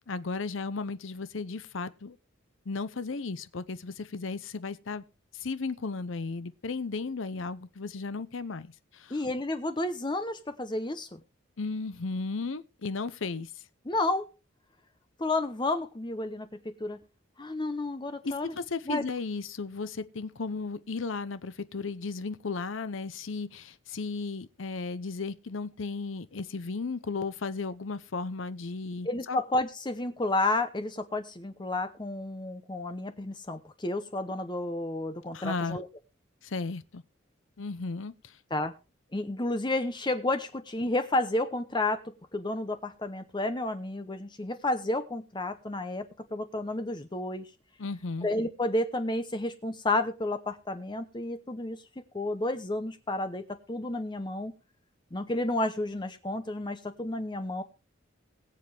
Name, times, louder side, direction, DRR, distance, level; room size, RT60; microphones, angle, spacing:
voice 1, 0.1-2.2 2.7-5.0 5.3-9.2 11.6-13.6 18.2-29.4 35.3-35.8 36.4-37.0 37.6-38.4 47.8-48.3, left 4 dB, 75° left, 0.7 m, -35 dB
voice 2, 9.1-11.2 13.9-14.3 15.2-16.5 16.8-17.0 17.4-18.5 18.9-19.0 29.0-35.9 38.5-38.7 39.1-42.0 42.3-47.5 48.2-51.8 52.1-53.4 53.7-54.5 55.1-57.6, left 2 dB, 25° left, 0.8 m, -31 dB
21.5 x 7.6 x 3.4 m
head